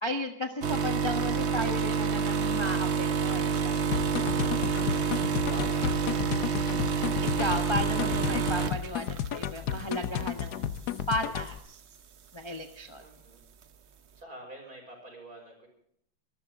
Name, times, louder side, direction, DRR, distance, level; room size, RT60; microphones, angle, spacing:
voice 1, 0.0-3.8 7.2-10.7 11.1-11.8 12.3-13.0, left 1 dB, 20° left, 4 dB, 0.9 m, -34 dB
sound 1, 0.6-9.8 10.2-10.5 11.4-11.5, right 6 dB, 60° right, 0.7 m, -28 dB
sound 2, 3.9-11.6, left 9 dB, 60° left, 1.1 m, -33 dB
voice 2, 5.5-6.1 13.0-13.4 14.2-15.7, equal, 45° right, 0 dB, 6.6 m, -47 dB
24.5 x 13.5 x 3.7 m, 0.70 s
omnidirectional pair, 2.3 m